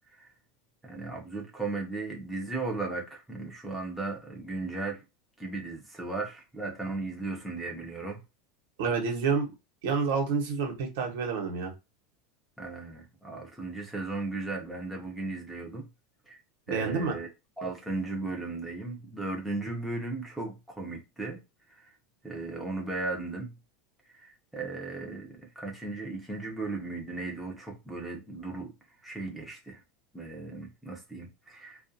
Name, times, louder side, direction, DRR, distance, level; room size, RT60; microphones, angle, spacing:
voice 1, 0.8-5.0 5.4-8.2 12.6-15.9 16.3-16.4 16.7-17.3 17.6-21.4 21.7-21.9 22.2-23.5 24.1-28.7 29.0-29.8 30.1-31.9, right 3 dB, ahead, 0.7 m, -36 dB
voice 2, 8.8-9.5 9.8-11.7 16.7-17.1, right 5 dB, 75° right, 1.1 m, -28 dB
2.4 x 2.3 x 2.6 m
supercardioid pair, 150°, 0 cm